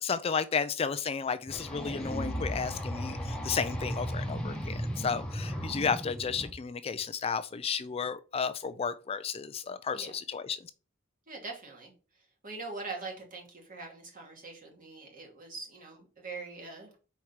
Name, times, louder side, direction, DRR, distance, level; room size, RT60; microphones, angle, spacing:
voice 1, 0.0-10.6, left 6 dB, 30° left, 0.4 m, -33 dB
sound 1, 1.5-6.5, equal, 5° left, 1.2 m, -35 dB
voice 2, 11.3-11.9 12.4-17.0, right 3 dB, 45° right, 2.5 m, -43 dB
4.6 x 4.5 x 5.6 m
head